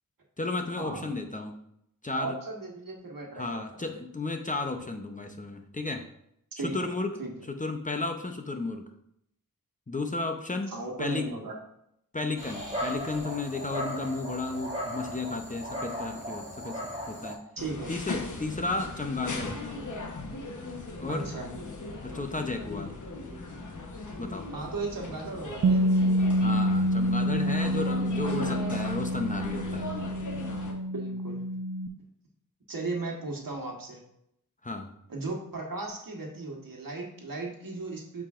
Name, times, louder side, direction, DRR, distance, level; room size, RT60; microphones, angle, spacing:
voice 1, 0.4-1.6 2.0-2.4 3.3-6.0 6.6-7.1 7.6-8.9 9.9-10.7 11.0-11.3 12.1-17.4 17.9-19.6 21.0-21.3 22.0-22.9 24.2-24.5 26.4-29.9 34.6-34.9, left 3 dB, 25° left, 4 dB, 0.7 m, -33 dB
voice 2, 2.2-3.8 6.6-6.9 7.2-7.3 10.7-11.5 17.6-17.9 21.1-21.5 24.5-25.9 30.8-31.4 32.7-34.0 35.1-38.2, right 3 dB, 75° right, 0 dB, 1.4 m, -36 dB
Dog, 12.4-17.3, equal, 20° right, 2.2 m, -36 dB
sound 1, 17.6-30.7, left 2 dB, 60° left, 1.1 m, -38 dB
Bass guitar, 25.6-31.9, equal, 50° right, 0.5 m, -27 dB
8.5 x 4.9 x 2.5 m, 0.75 s
wide cardioid pair, 85°, 34 cm